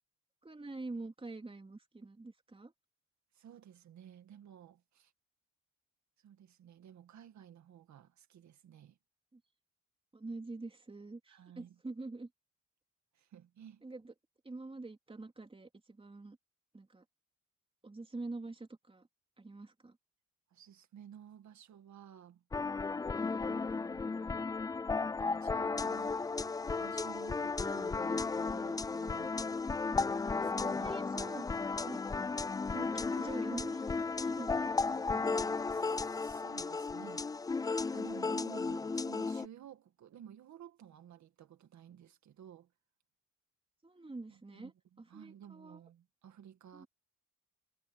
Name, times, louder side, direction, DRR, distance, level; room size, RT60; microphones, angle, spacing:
voice 1, 0.4-2.7 9.3-9.4 10.1-12.3 13.8-14.1 14.4-16.4 16.7-17.0 17.8-19.1 19.4-20.0 29.0-29.2 29.9-30.0 30.6-31.4 31.9-32.0 32.7-35.6 43.8-45.8 46.7-46.9, right 3 dB, 20° right, 3.3 m, -46 dB
voice 2, 3.3-5.1 6.2-9.0 11.3-11.7 13.1-13.8 20.5-22.4 23.4-24.5 25.0-26.2 26.8-29.6 30.3-31.0 35.7-37.3 37.9-42.7 44.3-44.7 45.1-46.9, right 9 dB, 65° right, 2.1 m, -54 dB
sound 1, 22.5-39.5, left 4 dB, 15° left, 0.3 m, -34 dB
cardioid pair, 90°, 30 cm